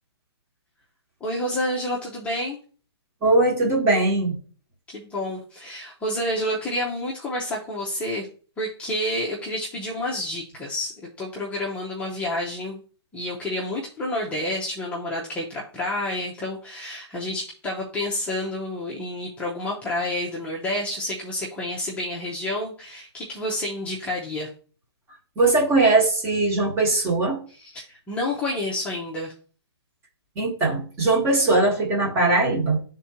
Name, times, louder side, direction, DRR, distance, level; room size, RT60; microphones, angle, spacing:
voice 1, 1.2-2.6 4.9-8.3 8.6-12.8 13.1-24.5 27.6-29.3, left 1 dB, 10° left, -4 dB, 0.8 m, -29 dB
voice 2, 3.2-4.4 25.4-27.4 30.3-32.8, right 2 dB, 20° right, 0 dB, 1.4 m, -20 dB
11.0 x 3.7 x 2.9 m, 0.40 s
hypercardioid pair, 150°, 14 cm